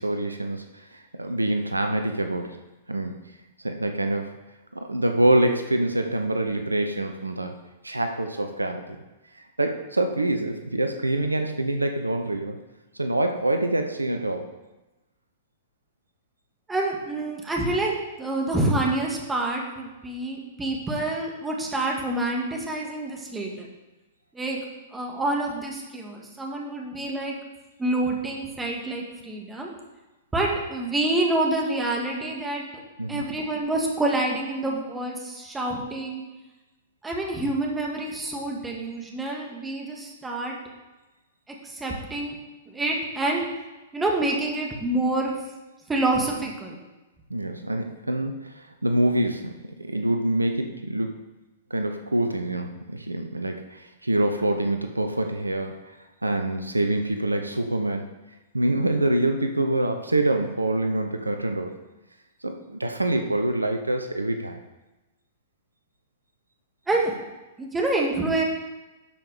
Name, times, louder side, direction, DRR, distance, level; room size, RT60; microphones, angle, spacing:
voice 1, 0.0-2.6 2.9-3.3 3.6-4.3 4.7-9.0 9.6-12.6 12.9-14.5 33.0-33.2 47.3-51.2 51.7-55.9 56.2-58.1 58.5-61.7 62.4-64.6, right 1 dB, 85° right, 6 dB, 0.8 m, -26 dB
voice 2, 16.7-23.7 24.3-24.6 24.9-27.4 27.8-29.7 30.3-32.8 33.1-36.2 37.0-40.6 41.6-42.4 42.7-43.4 43.9-45.3 45.9-46.8 66.9-67.1 67.6-68.4, right 2 dB, 10° right, -1 dB, 2.2 m, -27 dB
12.0 x 5.7 x 5.0 m, 1.1 s
figure-of-eight pair, 105°, 0 cm